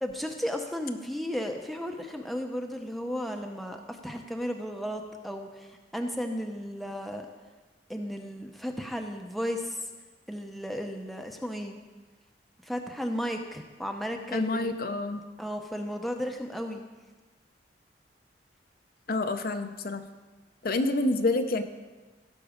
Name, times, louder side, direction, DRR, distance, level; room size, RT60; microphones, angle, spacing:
voice 1, 0.0-7.3 7.9-9.9 10.3-11.8 12.6-14.7 15.4-16.8, equal, ahead, 3 dB, 0.7 m, -34 dB
voice 2, 14.3-15.2 19.1-20.0 20.6-21.6, left 2 dB, 50° left, 8 dB, 0.6 m, -27 dB
16.5 x 6.1 x 5.1 m, 1.3 s
head